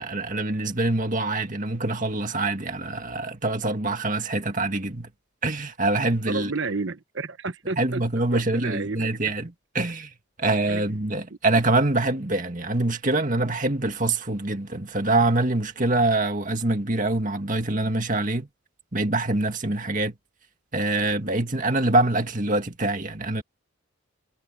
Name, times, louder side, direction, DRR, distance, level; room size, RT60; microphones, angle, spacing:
voice 1, 0.0-5.1 5.4-6.5 7.8-10.1 10.4-18.5 18.9-20.2 20.7-23.4, right 2 dB, 40° right, 2.1 m, -25 dB
voice 2, 6.3-8.0 8.3-9.1 10.7-10.8, right 3 dB, 55° right, 1.0 m, -31 dB
head